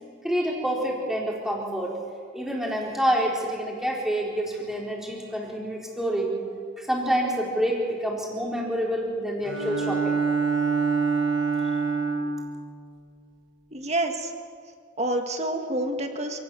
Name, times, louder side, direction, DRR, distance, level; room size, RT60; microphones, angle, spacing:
voice 1, 0.2-1.9 2.3-6.3 6.8-10.2, equal, ahead, -3 dB, 4.2 m, -27 dB
Bowed string instrument, 9.4-12.5, right 5 dB, 80° right, 4.7 m, -25 dB
voice 2, 13.7-14.3 15.0-16.4, right 1 dB, 35° right, 5 dB, 2.2 m, -28 dB
28.0 x 18.5 x 7.2 m, 2.1 s
head